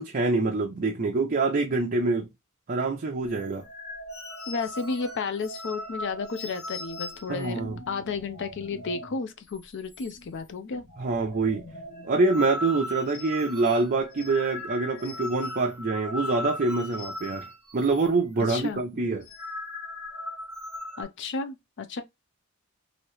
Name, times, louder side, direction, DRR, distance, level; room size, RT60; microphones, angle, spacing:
voice 1, 0.0-2.3 2.7-3.6 7.3-7.8 11.0-11.6 12.0-17.5 17.7-19.2, right 3 dB, 40° right, 0.5 m, -25 dB
sound 1, 3.3-9.2 9.5-9.6 9.9-10.5 10.8-18.1 18.4-18.6 19.1-21.0, left 1 dB, 80° left, 1.2 m, -38 dB
voice 2, 4.5-7.6 7.9-10.9 18.5-18.8 21.0-22.0, left 4 dB, 55° left, 0.5 m, -32 dB
2.9 x 2.7 x 2.9 m
head